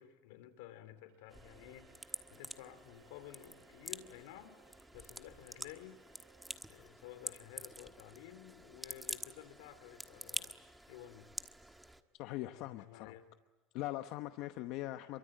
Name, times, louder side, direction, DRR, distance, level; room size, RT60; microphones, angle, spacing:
voice 1, 0.0-6.0 6.7-10.6 10.9-11.4 12.5-13.3, left 12 dB, 80° left, 10 dB, 3.4 m, -53 dB
Bowed string instrument, 1.1-6.8, right 7 dB, 75° right, 5.4 m, -67 dB
sound 1, 1.3-12.0, right 1 dB, 5° right, 1.3 m, -48 dB
voice 2, 12.1-13.2 13.7-15.2, left 16 dB, 60° left, 9 dB, 1.0 m, -41 dB
28.0 x 23.5 x 9.0 m, 1.2 s
cardioid pair, 145°, 0 cm